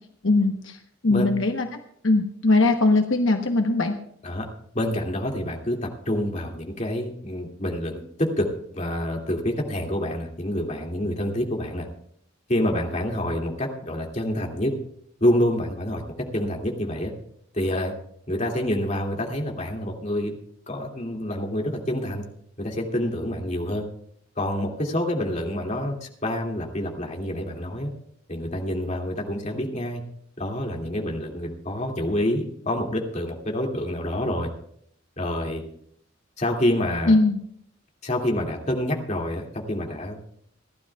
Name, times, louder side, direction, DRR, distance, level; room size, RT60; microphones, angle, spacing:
voice 1, 0.2-4.0 37.1-37.4, left 2 dB, 70° left, 4 dB, 1.1 m, -21 dB
voice 2, 4.7-11.9 12.5-14.7 15.2-16.0 16.3-17.1 17.5-17.9 18.3-20.4 20.7-22.2 22.6-23.8 24.4-27.9 28.3-30.0 30.4-34.5 35.2-35.6 36.4-37.2 38.0-40.2, left 1 dB, 35° left, 0 dB, 2.5 m, -27 dB
29.0 x 12.0 x 2.4 m, 0.66 s
head